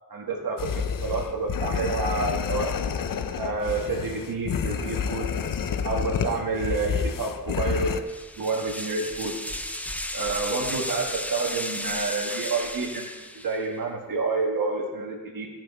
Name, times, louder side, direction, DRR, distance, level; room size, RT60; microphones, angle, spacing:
voice 1, 0.1-2.7 3.4-5.3 5.8-7.9 8.4-9.4 10.1-13.1 13.3-15.5, right 3 dB, 75° right, 1 dB, 1.7 m, -29 dB
sound 1, 0.6-8.0, left 6 dB, 70° left, 0.7 m, -29 dB
sound 2, 8.1-13.7, left 1 dB, 5° left, 0.6 m, -34 dB
15.5 x 6.2 x 4.7 m, 1.2 s
wide cardioid pair, 130°, 35 cm